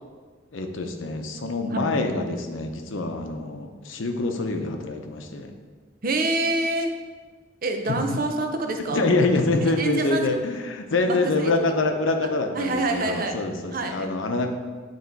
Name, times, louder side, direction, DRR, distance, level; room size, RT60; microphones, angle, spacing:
voice 1, 0.5-5.5 7.9-8.0 8.9-14.5, left 2 dB, 80° left, 4 dB, 0.7 m, -25 dB
voice 2, 6.0-6.9 7.6-9.0 9.6-10.3 11.1-11.6 12.5-13.4 13.7-14.1, right 2 dB, 45° right, 4 dB, 0.7 m, -26 dB
9.2 x 3.1 x 4.5 m, 1.5 s
head